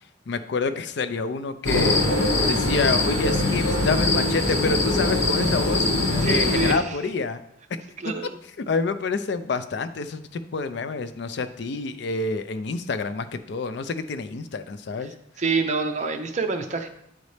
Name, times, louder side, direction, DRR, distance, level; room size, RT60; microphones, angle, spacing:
voice 1, 0.3-2.1 2.5-5.8 6.2-7.4 8.6-15.1, left 4 dB, 60° left, 11 dB, 0.4 m, -28 dB
sound 1, 1.6-6.7, left 2 dB, 75° left, 1.6 m, -22 dB
voice 2, 6.2-6.8 8.0-8.4 15.4-16.9, right 4 dB, 40° right, 6 dB, 0.6 m, -26 dB
9.2 x 4.1 x 3.2 m, 0.76 s
head